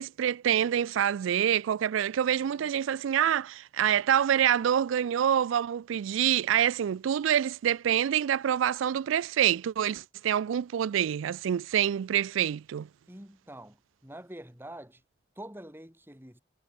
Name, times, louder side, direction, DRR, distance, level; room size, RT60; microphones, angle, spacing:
voice 1, 0.0-12.9, right 9 dB, 85° right, 0.3 m, -26 dB
voice 2, 13.1-15.0 15.3-16.4, right 1 dB, 10° right, 6.5 m, -46 dB
head